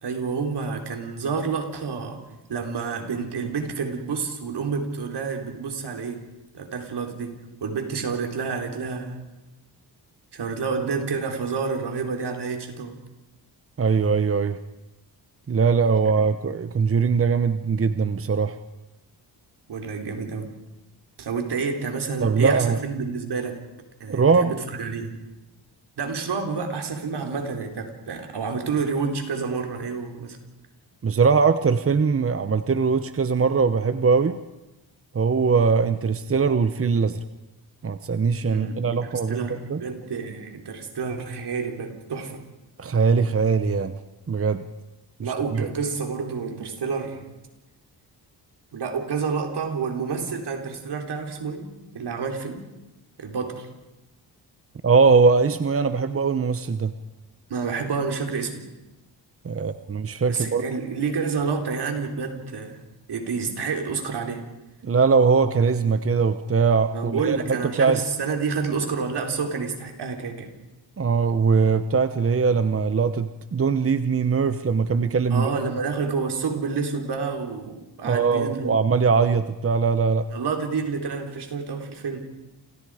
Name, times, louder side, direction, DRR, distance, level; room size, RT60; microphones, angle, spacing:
voice 1, 0.0-2.2 2.5-6.2 6.5-9.2 10.3-13.0 19.7-20.5 21.2-23.6 24.0-25.2 26.0-30.4 38.5-42.4 45.2-47.2 48.7-52.6 53.2-53.7 57.5-58.6 60.3-62.8 63.1-64.4 66.9-70.5 75.3-78.7 80.3-82.3, right 5 dB, 75° right, 3 dB, 4.2 m, -29 dB
voice 2, 13.8-14.6 15.5-18.6 22.2-22.8 24.1-24.5 31.0-34.4 35.1-37.2 37.8-39.8 42.8-43.9 44.3-44.6 45.2-45.7 54.8-56.9 59.4-60.6 64.8-68.0 71.0-75.5 78.0-80.3, right 5 dB, 35° right, 10 dB, 1.0 m, -21 dB
29.5 x 28.0 x 5.1 m, 0.99 s
wide cardioid pair, 110°, 41 cm